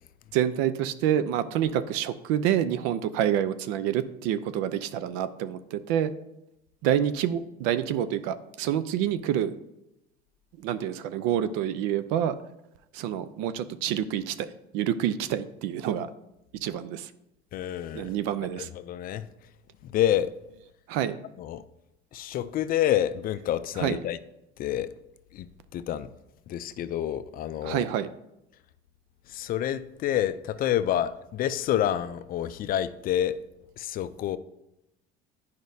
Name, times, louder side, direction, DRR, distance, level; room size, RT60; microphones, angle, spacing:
voice 1, 0.3-6.1 6.8-9.5 10.6-12.4 12.9-14.5 14.7-16.1 16.6-17.1 17.9-18.7 20.9-21.2 23.8-24.0 27.6-28.1, right 10 dB, 80° right, 13 dB, 0.5 m, -27 dB
voice 2, 17.5-18.1 18.6-19.3 19.8-20.3 21.4-21.6 22.1-24.2 24.6-24.9 25.3-25.5 25.7-26.1 26.5-27.8 29.3-33.4 33.8-34.4, left 11 dB, 45° left, 13 dB, 0.4 m, -28 dB
9.4 x 5.1 x 2.7 m, 0.88 s
supercardioid pair, 115°, 21 cm